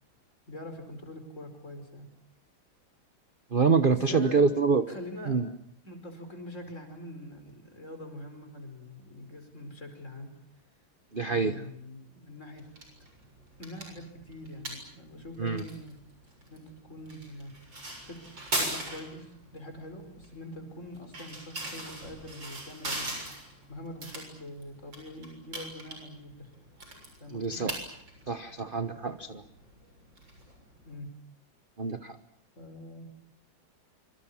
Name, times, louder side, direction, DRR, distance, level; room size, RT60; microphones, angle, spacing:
voice 1, 0.5-2.1 3.9-4.4 4.9-5.4 5.9-10.3 11.2-12.7 13.6-15.9 16.5-17.5 18.0-23.2 23.7-26.5 27.2-27.6 30.9-31.1 32.6-33.1, left 1 dB, 35° left, 6 dB, 5.3 m, -44 dB
voice 2, 3.5-4.8 5.3-5.5 11.1-11.6 15.4-15.6 27.3-27.8 28.3-29.4 31.8-32.2, right 5 dB, 35° right, 10 dB, 0.9 m, -26 dB
sound 1, 12.6-30.9, right 1 dB, 60° right, 7.7 m, -41 dB
26.0 x 25.5 x 7.3 m, 0.74 s
omnidirectional pair, 2.3 m